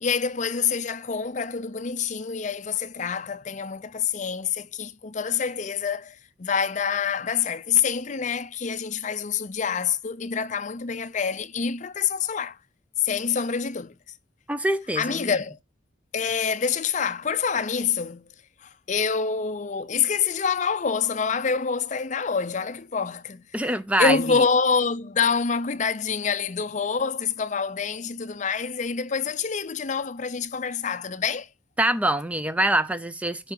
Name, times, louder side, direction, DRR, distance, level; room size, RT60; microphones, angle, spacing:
voice 1, 0.0-12.6 13.0-13.9 15.0-15.6 16.1-18.3 18.6-23.7 24.0-31.5, left 6 dB, 40° left, 0.5 m, -26 dB
voice 2, 14.5-15.3 23.5-24.4 31.8-33.5, right 1 dB, 5° right, 0.5 m, -24 dB
9.5 x 5.7 x 5.3 m
head